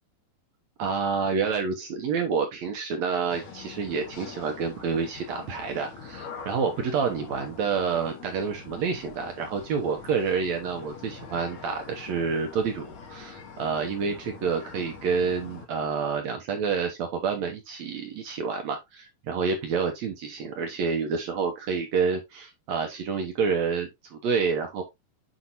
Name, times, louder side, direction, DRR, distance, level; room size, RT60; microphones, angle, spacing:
voice 1, 0.8-24.8, right 5 dB, 65° right, 1.9 m, -28 dB
sound 1, 3.3-15.7, left 5 dB, 55° left, 2.5 m, -44 dB
7.9 x 5.1 x 2.7 m
omnidirectional pair, 4.2 m